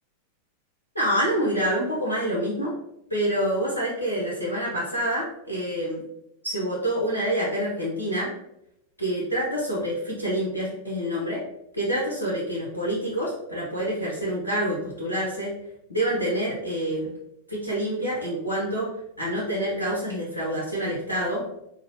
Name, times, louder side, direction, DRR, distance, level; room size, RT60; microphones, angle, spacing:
voice 1, 0.9-2.7 3.1-6.0 6.4-8.3 9.0-11.4 11.7-15.5 15.9-17.1 17.5-18.9 19.2-21.4, right 1 dB, 80° left, -6 dB, 0.9 m, -27 dB
5.1 x 2.4 x 2.8 m, 0.82 s
figure-of-eight pair, 90°, 0 cm